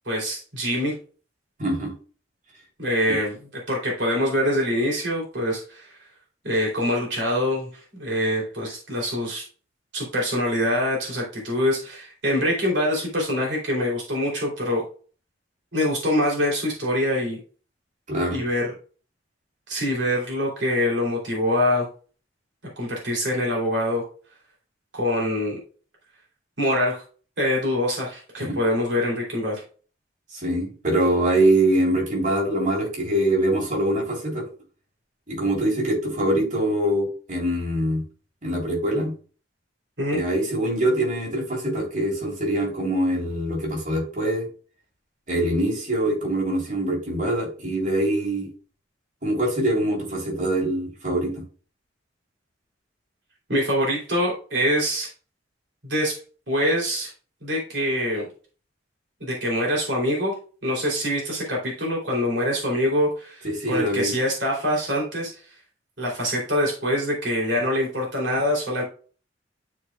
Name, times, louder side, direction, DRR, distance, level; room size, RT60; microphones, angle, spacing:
voice 1, 0.0-0.9 2.8-3.4 3.7-6.0 6.4-9.4 9.9-14.9 15.7-17.4 18.3-18.7 19.7-21.9 22.8-24.0 24.9-25.6 26.6-27.0 27.4-29.6 40.0-40.2 53.5-55.1 55.8-56.2 56.5-57.1 57.4-58.3 59.2-60.3 60.6-65.4 66.0-68.8, equal, 70° right, -3 dB, 3.2 m, -24 dB
voice 2, 1.6-1.9 18.1-18.4 28.5-28.6 30.3-34.4 35.3-38.0 38.4-39.1 40.1-44.4 45.3-48.5 49.2-51.4 63.4-64.1, right 1 dB, 45° right, -3 dB, 3.6 m, -24 dB
12.0 x 4.9 x 2.3 m, 0.39 s
head